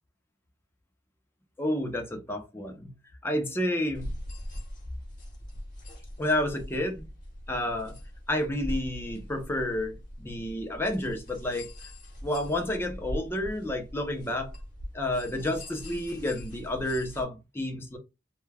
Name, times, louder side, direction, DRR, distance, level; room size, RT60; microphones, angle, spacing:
voice 1, 1.6-2.9 3.2-4.1 6.2-7.1 7.5-8.0 8.3-11.7 12.2-14.5 14.9-18.0, left 1 dB, 15° left, 0.5 m, -30 dB
sound 1, 3.9-17.2, equal, 45° left, 1.0 m, -41 dB
2.3 x 2.2 x 3.2 m
head